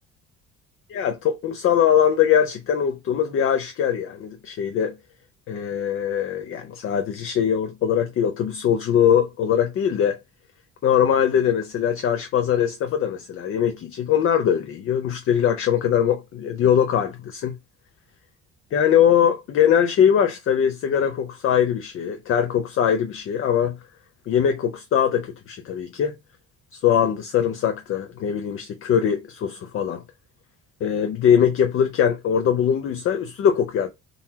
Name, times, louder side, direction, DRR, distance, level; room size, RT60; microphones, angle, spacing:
voice 1, 0.9-4.9 5.5-10.2 10.8-17.6 18.7-23.8 24.3-26.1 26.7-30.0 30.8-33.9, left 8 dB, 45° left, 0.6 m, -21 dB
3.9 x 2.9 x 4.2 m
cardioid pair, 175°, 30 cm